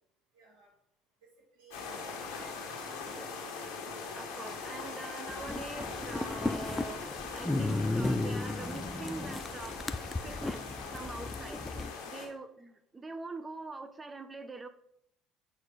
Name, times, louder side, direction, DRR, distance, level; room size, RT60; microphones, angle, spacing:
voice 1, 0.3-0.7 1.2-3.0 12.2-12.4, right 3 dB, 75° right, -4 dB, 3.8 m, -59 dB
sound 1, 1.7-12.3, left 4 dB, 70° left, 2.1 m, -41 dB
voice 2, 4.1-11.6 12.0-14.7, right 3 dB, 25° right, 9 dB, 1.1 m, -44 dB
sound 2, 5.3-11.9, left 2 dB, 15° left, 0.6 m, -35 dB
8.3 x 4.5 x 5.3 m, 0.73 s
hypercardioid pair, 60°, 0 cm